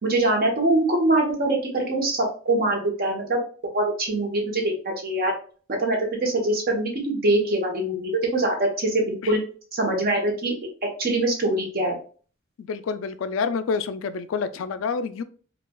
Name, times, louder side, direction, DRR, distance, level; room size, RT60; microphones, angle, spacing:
voice 1, 0.0-2.2 2.4-3.4 3.7-5.3 5.7-9.4 9.7-10.5 11.0-11.9, right 2 dB, 45° right, 1.0 m, -23 dB
voice 2, 12.6-15.2, left 5 dB, 70° left, 0.3 m, -28 dB
4.5 x 2.3 x 2.2 m
head